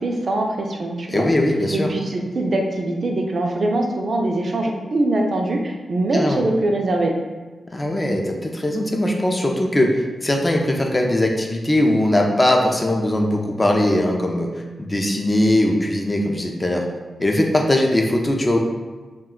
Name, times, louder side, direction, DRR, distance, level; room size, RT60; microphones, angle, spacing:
voice 1, 0.0-1.2 1.7-7.1, right 2 dB, 55° right, 1 dB, 0.4 m, -22 dB
voice 2, 1.1-1.9 6.1-6.4 7.7-14.5 14.8-16.8 17.2-18.6, left 1 dB, 20° left, 1 dB, 0.4 m, -20 dB
2.3 x 2.2 x 3.6 m, 1.3 s
wide cardioid pair, 95°, 0 cm